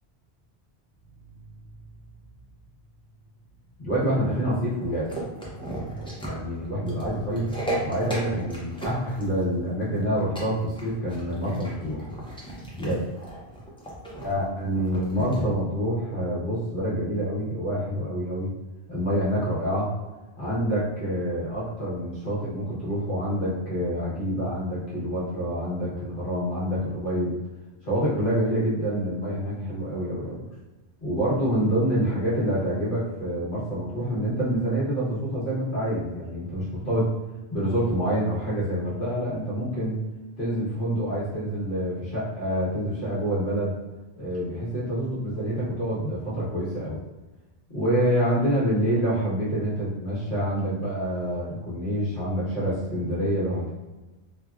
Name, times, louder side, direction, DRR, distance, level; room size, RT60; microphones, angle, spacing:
sound 1, 1.0-12.6 13.3-13.6, right 1 dB, 75° left, 1.1 m, -46 dB
voice 1, 3.8-5.1 6.3-7.4 7.8-12.1 12.8-13.0 14.2-18.5 18.9-19.9 20.4-27.3 27.8-30.4 31.0-37.1 37.5-40.0 40.4-43.7 44.1-47.0 47.7-53.7, equal, 50° left, -9 dB, 1.2 m, -27 dB
sound 2, 4.8-15.4, right 1 dB, 5° left, 0.4 m, -35 dB
3.1 x 2.2 x 2.4 m, 1.1 s
omnidirectional pair, 1.1 m